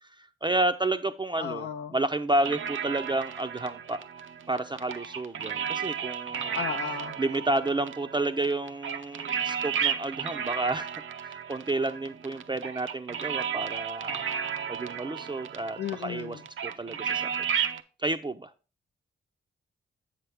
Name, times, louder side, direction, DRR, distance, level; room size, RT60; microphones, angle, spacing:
voice 1, 0.0-4.0 4.5-6.6 7.2-10.9 11.2-14.3 14.7-17.3 18.0-18.5, right 2 dB, 20° right, 0.5 m, -30 dB
voice 2, 1.4-1.9 6.5-7.1 15.8-16.4, left 8 dB, 55° left, 0.4 m, -34 dB
sound 1, 2.4-17.8, right 7 dB, 70° right, 0.6 m, -33 dB
7.4 x 5.8 x 3.4 m
cardioid pair, 55°, 21 cm